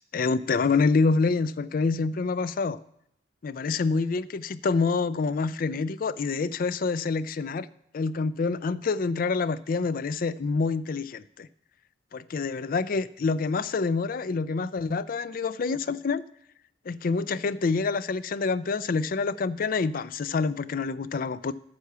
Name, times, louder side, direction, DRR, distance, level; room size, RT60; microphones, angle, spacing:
voice 1, 0.1-2.8 3.4-7.7 7.9-11.5 12.1-16.2 16.9-21.5, left 4 dB, 50° left, 15 dB, 0.4 m, -27 dB
9.6 x 5.8 x 6.8 m, 0.76 s
head